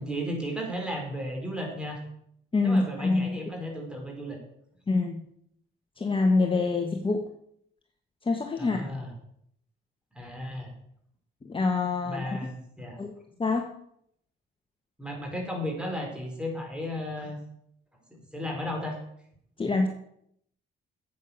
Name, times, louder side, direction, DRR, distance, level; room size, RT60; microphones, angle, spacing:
voice 1, 0.0-2.0 2.6-4.4 8.6-9.1 10.1-10.7 12.0-13.0 15.0-17.4 18.3-19.0, equal, 5° right, 1 dB, 4.8 m, -34 dB
voice 2, 2.5-3.4 4.9-5.2 6.0-7.3 8.2-9.0 11.4-12.3 13.0-13.1 13.4-13.7 19.6-19.9, left 3 dB, 25° left, 3 dB, 1.5 m, -26 dB
9.4 x 8.5 x 7.2 m, 0.70 s
cardioid pair, 90°, 20 cm